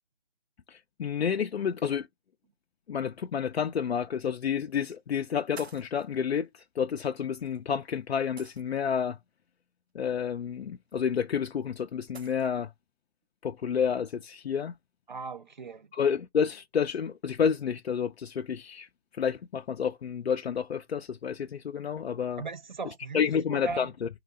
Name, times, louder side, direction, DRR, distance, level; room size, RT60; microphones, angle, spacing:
voice 1, 0.7-2.1 2.9-9.2 9.9-12.7 13.4-14.7 15.9-18.9 19.2-22.4 23.1-24.1, left 7 dB, 85° left, 0.6 m, -30 dB
sound 1, 3.6-3.7 4.7-5.0 5.6-6.1 7.4-7.6 8.4-9.0 10.9-11.0 12.1-12.5, right 5 dB, 85° right, 0.9 m, -49 dB
voice 2, 15.1-15.9 22.4-23.9, right 4 dB, 50° right, 0.5 m, -38 dB
3.8 x 2.4 x 4.1 m
hypercardioid pair, 175°, 31 cm